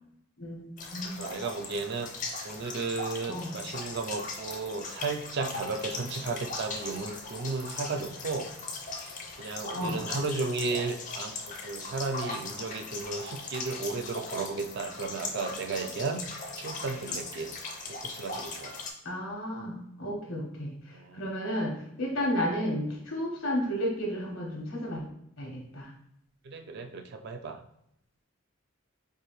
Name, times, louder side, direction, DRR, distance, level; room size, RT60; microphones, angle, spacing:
voice 1, 0.4-1.2 3.3-3.5 9.7-10.0 19.0-21.7 22.0-25.0 25.4-25.9, equal, 75° left, -1 dB, 1.3 m, -32 dB
sound 1, 0.8-18.9, left 3 dB, 35° left, 0.5 m, -39 dB
voice 2, 1.2-2.1 2.4-8.5 8.8-9.1 9.4-16.2 16.6-17.5 17.9-18.8 19.2-19.3 20.9-21.3 26.4-27.6, right 3 dB, 50° right, 5 dB, 0.4 m, -34 dB
4.6 x 2.6 x 3.0 m, 0.78 s
head